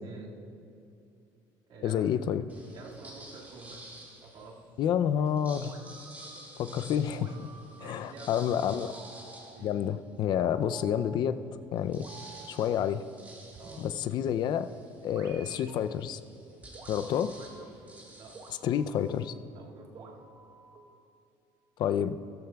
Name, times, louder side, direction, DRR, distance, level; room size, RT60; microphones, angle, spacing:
voice 1, 0.0-0.4 1.7-2.0 2.7-3.8 4.2-4.6 7.8-8.8 9.5-9.8 13.6-13.9 17.1-17.7 18.1-18.3 19.5-20.2, right 3 dB, 65° right, -3 dB, 2.0 m, -49 dB
voice 2, 1.8-2.4 4.8-5.7 6.6-7.5 7.8-8.9 9.6-11.4 11.7-12.1 12.5-13.0 13.8-14.7 15.0-16.2 16.9-17.3 18.6-19.3 21.8-22.2, left 9 dB, 50° left, 12 dB, 0.4 m, -29 dB
sound 1, 2.5-4.6 5.2-10.4 10.9-11.0 11.2-19.3, right 1 dB, 20° right, 2.1 m, -51 dB
sound 2, 5.6-6.6 7.2-8.2 8.8-9.8 10.4-11.4 12.0-13.0 13.5-14.6 15.1-15.9 16.7-17.8 18.3-19.4 19.9-21.0, right 4 dB, 40° right, 1.0 m, -52 dB
16.0 x 13.5 x 2.3 m, 2.5 s
cardioid pair, 140°, 9 cm